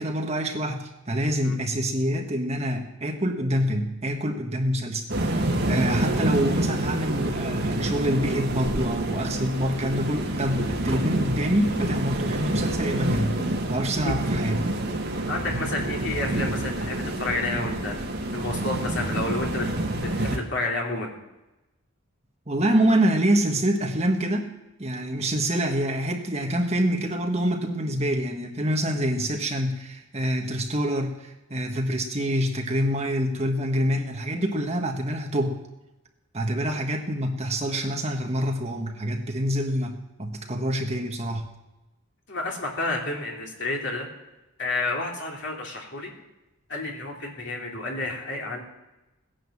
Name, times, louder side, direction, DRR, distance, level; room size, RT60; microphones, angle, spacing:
voice 1, 0.0-5.0 5.7-13.4 13.7-14.7 22.5-24.5 24.8-35.6 36.3-41.5, equal, 30° right, 3 dB, 1.5 m, -26 dB
sound 1, 5.1-20.4, right 1 dB, 50° right, 2.2 m, -27 dB
voice 2, 15.3-18.0 18.3-19.7 20.0-21.1 25.0-25.1 42.3-44.1 44.6-46.1 46.7-48.6, left 2 dB, 55° left, -1 dB, 3.0 m, -30 dB
17.0 x 10.5 x 7.3 m, 1.0 s
head